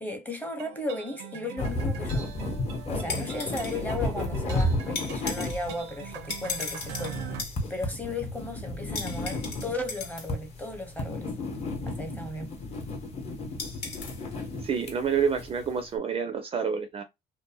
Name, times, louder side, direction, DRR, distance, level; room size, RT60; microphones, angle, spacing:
voice 1, 0.0-2.3 2.9-7.2 7.7-11.3 11.9-12.5, left 2 dB, 10° left, 0.7 m, -35 dB
sound 1, 0.6-7.4, right 9 dB, 90° right, 0.5 m, -43 dB
sound 2, 1.6-15.8, left 1 dB, 40° left, 0.9 m, -33 dB
sound 3, 2.9-15.4, left 4 dB, 80° left, 1.1 m, -40 dB
voice 2, 14.6-17.0, right 6 dB, 35° right, 0.4 m, -28 dB
2.6 x 2.1 x 2.7 m
cardioid pair, 110°, 17 cm